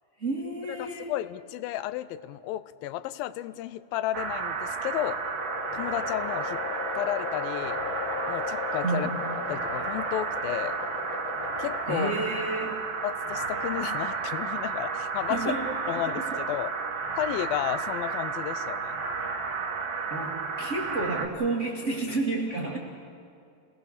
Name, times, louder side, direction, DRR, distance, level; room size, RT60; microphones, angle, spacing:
voice 1, 0.2-1.1 8.8-9.2 11.9-12.8 15.3-16.4 20.1-22.8, right 3 dB, 25° right, -2 dB, 1.8 m, -31 dB
voice 2, 0.7-5.2 5.7-6.6 6.9-7.8 8.3-9.1 9.5-10.8 11.6-12.1 13.0-15.5 15.9-16.7 17.2-19.0, left 13 dB, 85° left, 15 dB, 2.5 m, -32 dB
sound 1, 4.1-21.3, right 5 dB, 45° right, 1.7 m, -32 dB
sound 2, 4.5-12.6, left 6 dB, 55° left, 1.4 m, -37 dB
29.0 x 19.0 x 6.8 m, 2.4 s
omnidirectional pair, 4.1 m